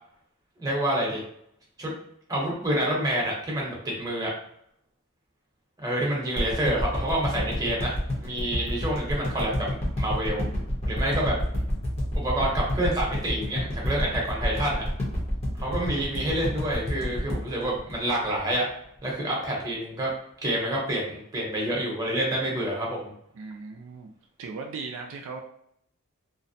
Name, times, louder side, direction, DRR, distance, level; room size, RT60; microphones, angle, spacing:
voice 1, 0.6-1.2 1.8-1.9 2.3-4.3 5.8-7.9 8.2-9.7 10.0-10.4 10.9-11.3 12.1-14.8 15.6-18.6 19.0-20.1 20.4-23.1, right 1 dB, 15° right, -3 dB, 0.8 m, -28 dB
sound 1, 6.4-18.7 19.1-19.2, left 1 dB, 30° left, 0.8 m, -28 dB
voice 2, 23.3-24.1 24.4-25.4, right 4 dB, 65° right, 2 dB, 0.3 m, -38 dB
2.6 x 2.1 x 2.6 m, 0.70 s
head